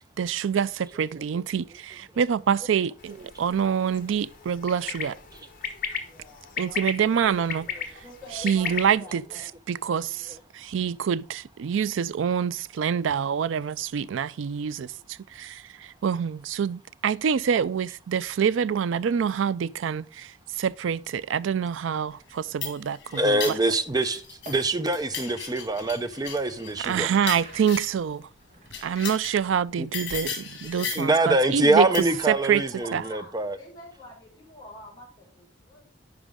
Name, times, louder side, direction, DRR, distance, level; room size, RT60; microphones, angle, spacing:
voice 1, 0.2-5.2 6.6-7.7 8.4-9.2 9.7-14.9 15.4-23.4 26.8-28.3 28.8-31.9 32.3-32.6 32.9-33.0, right 7 dB, 80° right, 0.4 m, -26 dB
sound 1, 3.0-8.9, left 7 dB, 45° left, 1.1 m, -36 dB
voice 2, 6.0-7.2 8.0-9.5 10.1-10.3 13.2-13.4 15.0-15.1 15.9-16.2 28.1-28.2 28.5-28.6 32.1-35.9, left 1 dB, 20° left, 4.3 m, -47 dB
sound 2, 22.3-24.6 24.9-28.1 28.7-29.4 29.9-31.2 31.9-32.3, left 7 dB, 60° left, 2.1 m, -36 dB
voice 3, 23.1-27.1 29.8-29.9 30.8-33.6, right 2 dB, 20° right, 0.6 m, -24 dB
sound 3, 23.7-23.8 24.3-24.6 25.1-25.3 25.8-29.6 30.0-30.2 30.6-32.4, right 2 dB, 35° right, 1.8 m, -49 dB
10.5 x 4.9 x 3.6 m
head